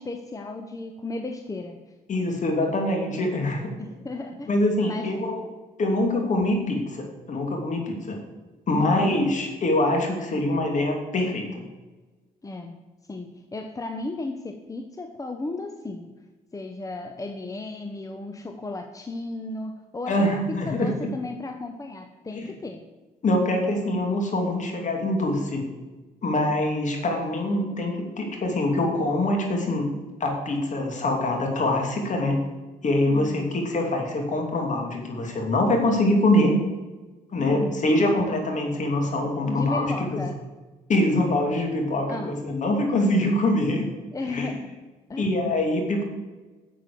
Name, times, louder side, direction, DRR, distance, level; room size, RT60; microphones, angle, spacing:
voice 1, 0.0-1.8 3.8-4.5 4.8-5.1 8.7-9.1 12.4-12.8 13.1-16.1 16.5-22.8 33.1-33.6 37.3-37.9 39.5-40.4 42.1-42.4 44.1-44.7 45.1-45.3, left 2 dB, 20° left, 6 dB, 0.9 m, -34 dB
voice 2, 2.1-3.7 4.5-5.4 5.8-8.2 8.7-11.6 20.1-20.9 22.3-22.5 23.2-25.7 26.2-29.9 30.2-32.4 32.8-36.6 37.3-40.2 40.9-43.9 44.3-44.5 45.2-46.1, left 1 dB, 50° left, 2 dB, 2.9 m, -24 dB
9.9 x 7.7 x 6.9 m, 1.2 s
cardioid pair, 85°, 16 cm